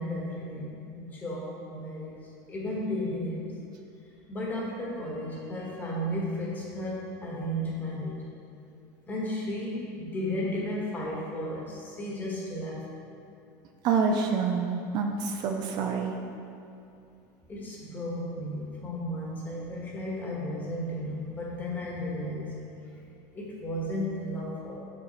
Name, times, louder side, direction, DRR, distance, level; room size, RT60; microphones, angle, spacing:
voice 1, 0.0-3.5 4.3-8.2 9.1-12.9 17.5-22.5 23.3-24.8, left 1 dB, 20° left, -4 dB, 1.5 m, -34 dB
voice 2, 13.8-16.2, right 5 dB, 45° right, 3 dB, 0.5 m, -27 dB
6.7 x 5.2 x 4.1 m, 2.5 s
supercardioid pair, 145°, 10 cm